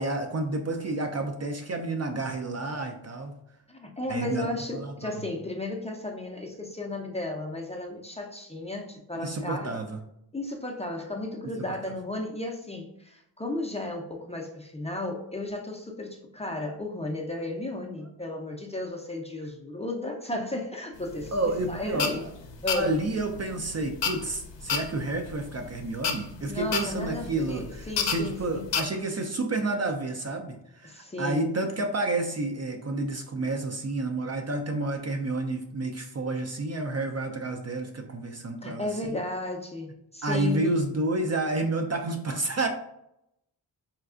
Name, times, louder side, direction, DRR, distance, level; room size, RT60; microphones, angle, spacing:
voice 1, 0.0-3.4 4.1-4.5 4.7-5.1 9.2-10.0 21.3-22.3 22.7-39.2 40.2-42.7, right 2 dB, 35° right, 4 dB, 0.5 m, -30 dB
voice 2, 3.7-9.8 10.3-22.2 22.6-22.9 26.5-28.6 30.8-31.5 38.6-40.8, left 2 dB, 15° left, 1 dB, 0.5 m, -34 dB
sound 1, 21.0-28.8, left 6 dB, 70° left, 0.6 m, -32 dB
4.4 x 2.3 x 2.4 m, 0.80 s
cardioid pair, 55°, 45 cm